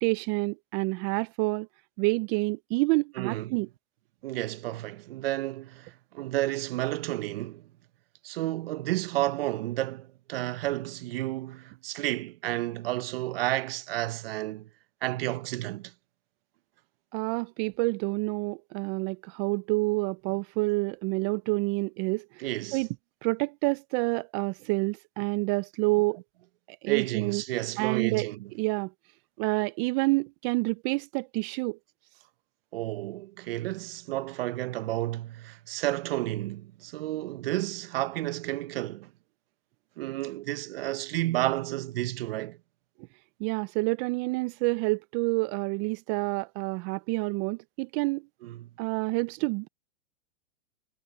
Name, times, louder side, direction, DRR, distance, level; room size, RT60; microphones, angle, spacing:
voice 1, 0.0-1.7 2.0-3.7 17.1-22.9 23.2-26.2 26.7-27.4 27.8-28.3 28.5-28.9 29.4-31.8 43.4-48.2 48.8-49.7, right 27 dB, 35° right, 0.5 m, -28 dB
voice 2, 3.2-3.6 4.2-7.7 8.2-14.7 15.0-15.9 22.4-22.8 26.9-28.5 32.7-39.1 40.0-42.6 48.4-48.7, right 16 dB, 60° right, 1.1 m, -31 dB
hypercardioid pair, 125°, 32 cm